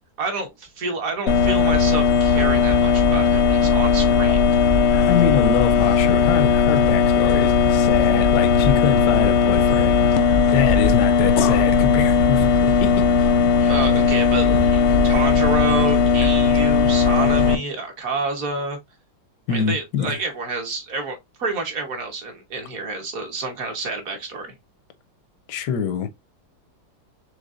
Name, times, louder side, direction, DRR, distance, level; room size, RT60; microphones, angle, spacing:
voice 1, 0.2-4.4 13.6-18.8 19.5-24.5, right 3 dB, 55° right, 1.5 m, -28 dB
sound 1, 1.3-17.5, left 5 dB, 65° left, 0.7 m, -17 dB
voice 2, 4.9-13.3 13.6-14.1 14.4-15.2 19.5-20.2 25.5-26.1, left 8 dB, 85° left, 1.2 m, -25 dB
5.1 x 3.5 x 2.5 m
omnidirectional pair, 1.8 m